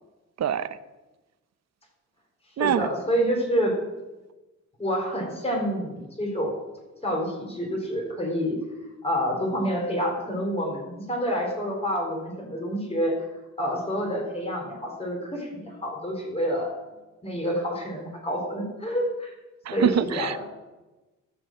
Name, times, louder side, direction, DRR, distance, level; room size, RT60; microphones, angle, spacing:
voice 1, 0.4-0.7 2.6-2.9 19.7-20.4, right 9 dB, 55° right, 14 dB, 0.7 m, -24 dB
voice 2, 2.6-3.7 4.8-6.5 7.0-8.6 9.0-13.2 13.6-16.7 17.2-19.3 19.7-20.4, equal, 20° left, -1 dB, 4.1 m, -28 dB
13.5 x 5.3 x 7.5 m, 1.1 s
cardioid pair, 95°, 33 cm